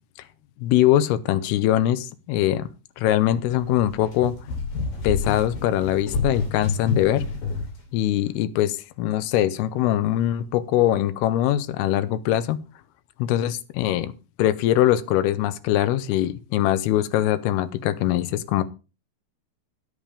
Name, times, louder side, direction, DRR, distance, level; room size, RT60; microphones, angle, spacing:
voice 1, 0.6-2.7 3.0-4.3 5.0-7.2 7.9-12.6 13.2-14.1 14.4-18.6, left 12 dB, 75° left, 2.7 m, -22 dB
sound 1, 3.5-7.8, left 4 dB, 55° left, 4.3 m, -29 dB
10.5 x 9.1 x 5.0 m
omnidirectional pair, 4.8 m